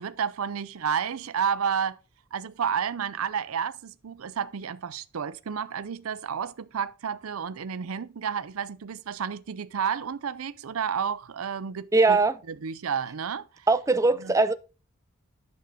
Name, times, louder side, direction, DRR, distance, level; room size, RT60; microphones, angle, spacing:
voice 1, 0.0-2.0 2.3-12.2 12.5-13.7 14.2-14.3, right 7 dB, 80° right, 0.5 m, -31 dB
voice 2, 11.9-12.3 13.7-14.5, right 3 dB, 15° right, 0.4 m, -21 dB
9.4 x 6.4 x 3.6 m
head